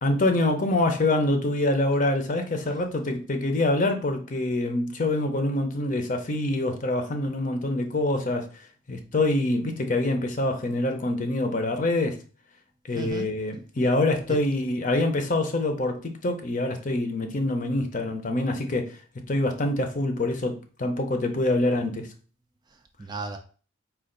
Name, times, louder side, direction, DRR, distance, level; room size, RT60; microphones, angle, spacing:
voice 1, 0.0-12.2 12.9-19.0 19.3-22.1, left 2 dB, 40° left, 0.7 m, -25 dB
voice 2, 12.9-13.3 14.3-14.4 22.7-23.4, right 3 dB, 20° right, 0.3 m, -36 dB
4.4 x 2.4 x 3.8 m
head